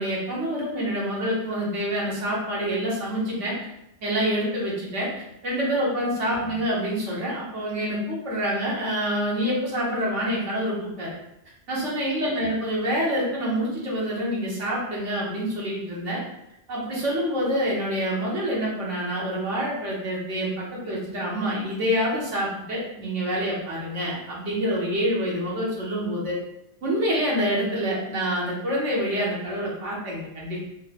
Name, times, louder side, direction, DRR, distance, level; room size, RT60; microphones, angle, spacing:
voice 1, 0.0-3.5 4.0-5.1 5.4-11.2 11.7-16.2 16.7-26.4 26.8-30.7, equal, 90° right, -5 dB, 1.4 m, -27 dB
4.5 x 3.0 x 2.2 m, 0.84 s
omnidirectional pair, 1.2 m